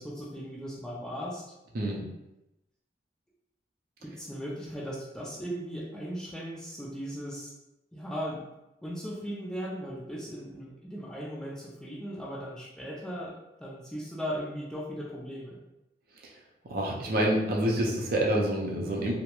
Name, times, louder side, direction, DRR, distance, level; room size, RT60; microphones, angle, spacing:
voice 1, 0.0-1.4 4.0-7.5 7.9-8.4 8.8-15.6, equal, 5° left, -5 dB, 0.3 m, -37 dB
voice 2, 16.6-19.1, right 1 dB, 55° right, -2 dB, 0.5 m, -27 dB
2.3 x 2.0 x 2.9 m, 0.94 s
head